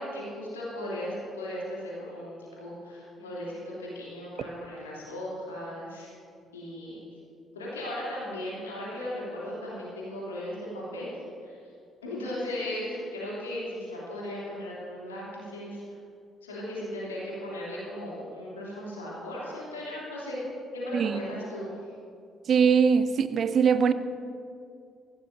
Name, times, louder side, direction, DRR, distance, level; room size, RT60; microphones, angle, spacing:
voice 1, 0.0-6.1 6.5-7.0 7.5-11.1 11.4-11.6 12.0-15.8 16.4-20.4 20.7-21.7, left 1 dB, 80° left, 2.8 m, -37 dB
voice 2, 20.9-21.4 22.5-23.9, right 6 dB, 50° right, 0.6 m, -22 dB
18.0 x 15.0 x 2.7 m
figure-of-eight pair, 45°, 0 cm